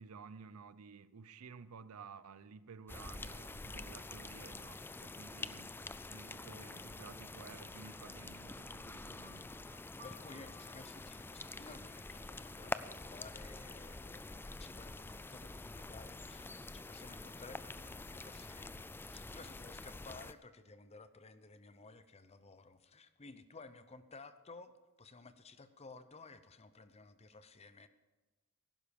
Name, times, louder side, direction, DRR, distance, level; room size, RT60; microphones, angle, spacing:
voice 1, 0.0-9.7, right 5 dB, 90° right, 0.6 m, -54 dB
sound 1, 2.9-20.3, left 2 dB, 10° left, 0.3 m, -47 dB
sound 2, 6.4-13.9, left 2 dB, 50° right, 2.9 m, -64 dB
voice 2, 10.0-27.9, left 3 dB, 30° left, 0.7 m, -55 dB
15.0 x 11.5 x 5.2 m
head